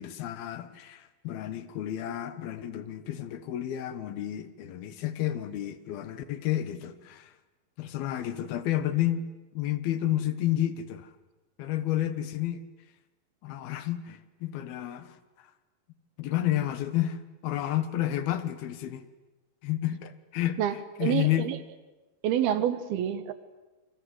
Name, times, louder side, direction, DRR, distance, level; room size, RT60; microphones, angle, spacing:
voice 1, 0.0-7.3 7.8-9.3 9.5-11.1 11.6-12.6 13.4-15.1 16.2-19.0 19.6-20.6 21.0-21.5, left 12 dB, 85° left, 3.3 m, -30 dB
voice 2, 21.0-21.6 22.2-23.3, right 10 dB, 85° right, 3.3 m, -27 dB
28.5 x 23.5 x 8.0 m
omnidirectional pair, 4.3 m